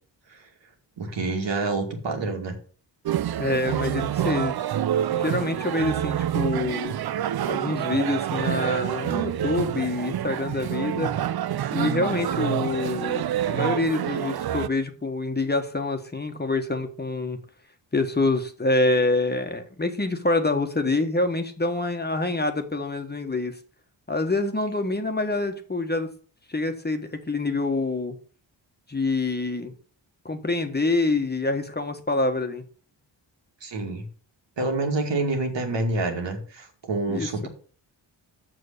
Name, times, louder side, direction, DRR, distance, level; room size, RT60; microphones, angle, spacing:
voice 1, 1.0-2.6 33.6-34.0 34.6-37.5, right 2 dB, 70° right, 3 dB, 2.3 m, -27 dB
sound 1, 3.1-14.7, right 11 dB, 55° right, 0.5 m, -27 dB
voice 2, 3.4-4.5 5.1-6.9 7.5-11.1 11.7-17.4 17.9-23.6 24.1-26.1 26.5-28.2 28.9-29.7 30.2-32.6 37.1-37.3, left 2 dB, 20° left, 6 dB, 1.4 m, -26 dB
6.8 x 6.4 x 6.7 m, 0.43 s
cardioid pair, 70°, 44 cm